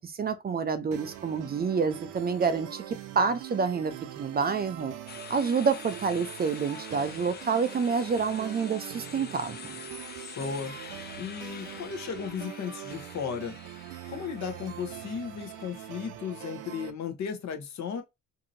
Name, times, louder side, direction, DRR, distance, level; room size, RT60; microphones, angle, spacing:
voice 1, 0.0-4.9 5.3-9.6, right 5 dB, 30° right, 0.4 m, -28 dB
sound 1, 0.9-16.9, right 12 dB, 90° right, 0.6 m, -43 dB
sound 2, 5.1-16.1, left 7 dB, 35° left, 0.5 m, -46 dB
voice 2, 10.4-10.7 11.2-13.6 14.1-18.0, left 7 dB, 65° left, 0.9 m, -35 dB
2.8 x 2.6 x 2.6 m
cardioid pair, 90°, 30 cm